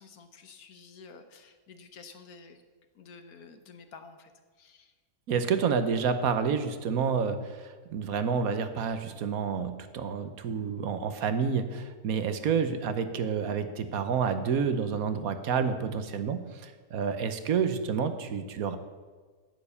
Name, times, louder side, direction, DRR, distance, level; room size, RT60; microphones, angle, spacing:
voice 1, 0.0-2.6 2.9-4.3 4.6-4.9, left 5 dB, 75° left, 8 dB, 1.5 m, -50 dB
voice 2, 5.3-18.8, right 6 dB, 75° right, 10 dB, 1.3 m, -29 dB
9.5 x 9.3 x 6.9 m, 1.4 s
omnidirectional pair, 1.6 m